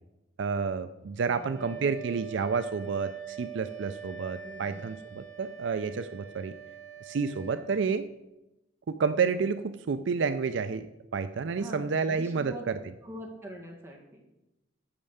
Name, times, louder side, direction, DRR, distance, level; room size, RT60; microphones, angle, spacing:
voice 1, 0.4-6.5 7.0-8.1 8.9-10.9 11.1-12.5, right 5 dB, 65° right, 11 dB, 0.4 m, -30 dB
voice 2, 1.2-1.9 4.4-4.8 11.6-12.6 13.0-14.2, equal, 15° right, -1 dB, 1.8 m, -44 dB
Wind instrument woodwind instrument, 1.2-7.7, right 10 dB, 40° right, 1.3 m, -44 dB
8.7 x 6.5 x 7.1 m, 0.95 s
head